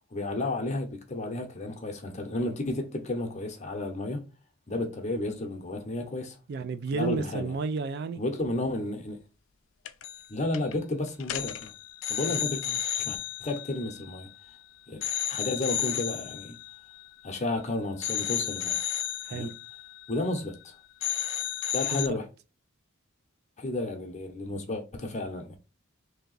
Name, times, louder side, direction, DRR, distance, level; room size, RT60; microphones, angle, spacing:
voice 1, 0.1-4.2 4.7-6.4 6.9-7.5 8.2-9.2 10.3-11.7 12.1-12.6 13.0-14.3 14.9-16.6 17.2-18.8 19.3-19.6 20.1-20.7 21.7-22.3 23.6-25.6, left 2 dB, 35° left, 0.7 m, -32 dB
voice 2, 6.5-8.2 12.2-12.8 19.2-19.5 21.9-22.1, right 4 dB, 50° right, 0.3 m, -32 dB
sound 1, 9.9-10.3 10.5-10.8 11.2-14.6 15.0-17.6 18.0-20.7 21.0-22.1, left 13 dB, 65° left, 0.4 m, -33 dB
3.4 x 2.8 x 3.9 m
head